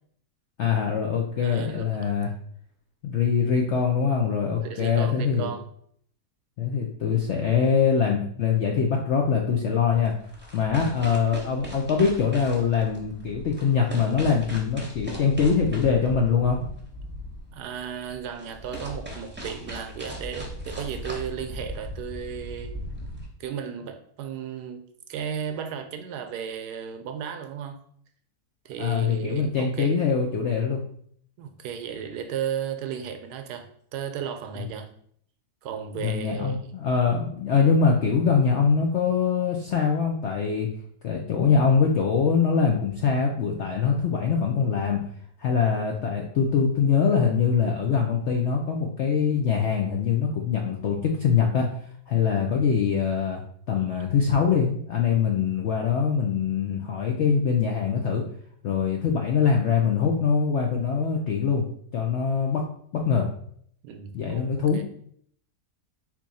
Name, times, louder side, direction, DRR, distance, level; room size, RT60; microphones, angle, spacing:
voice 1, 0.6-2.3 3.0-5.5 6.6-10.1 10.5-16.6 28.8-30.8 36.0-40.7 41.0-45.0 45.4-51.7 52.1-53.4 53.7-58.2 58.6-61.6 61.9-62.6 62.9-63.3 64.1-64.8, left 6 dB, 70° left, 1 dB, 0.6 m, -23 dB
voice 2, 1.4-2.1 4.6-5.6 17.5-22.7 23.4-27.8 28.6-29.9 31.4-33.7 33.9-34.9 35.6-36.7 53.9-54.0 63.8-64.5 64.7-64.8, right 8 dB, 75° right, 7 dB, 1.1 m, -34 dB
sound 1, 9.8-23.3, equal, 10° right, 0.7 m, -38 dB
4.4 x 2.9 x 4.0 m, 0.63 s
omnidirectional pair, 1.8 m